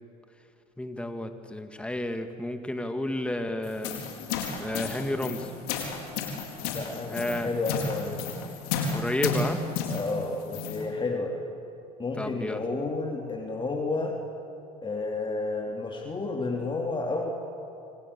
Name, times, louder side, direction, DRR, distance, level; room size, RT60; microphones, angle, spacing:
voice 1, 0.8-4.0 4.6-5.5 7.1-7.5 8.9-9.6 12.2-12.6, left 1 dB, 5° left, 6 dB, 2.1 m, -31 dB
sound 1, 3.6-10.8, left 5 dB, 80° left, 4.3 m, -32 dB
voice 2, 6.6-8.2 9.9-11.4 12.0-14.2 14.8-17.3, left 3 dB, 25° left, 1 dB, 3.5 m, -31 dB
27.0 x 26.5 x 7.1 m, 2.7 s
supercardioid pair, 80°, 19 cm